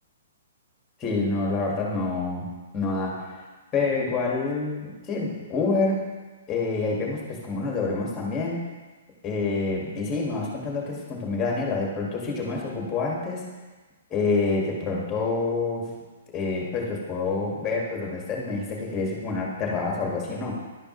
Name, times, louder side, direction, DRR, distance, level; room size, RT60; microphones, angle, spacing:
voice 1, 1.0-2.5 2.7-3.3 3.7-6.1 6.5-8.6 9.2-13.4 14.1-15.9 16.3-20.6, left 3 dB, 20° left, -2 dB, 1.9 m, -27 dB
11.5 x 5.0 x 3.2 m, 1.3 s
hypercardioid pair, 140°, 0 cm